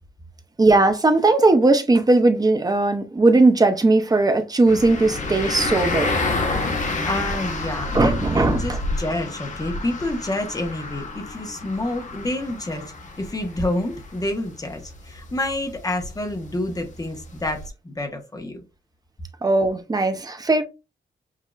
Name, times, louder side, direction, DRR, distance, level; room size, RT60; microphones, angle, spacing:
voice 1, 0.6-6.2 7.9-8.8 19.4-20.6, right 2 dB, 20° right, 0.7 m, -18 dB
sound 1, 4.7-17.7, left 2 dB, 45° left, 1.3 m, -29 dB
voice 2, 7.0-18.6, left 1 dB, 20° left, 1.2 m, -28 dB
7.4 x 2.8 x 2.4 m
wide cardioid pair, 150°, 18 cm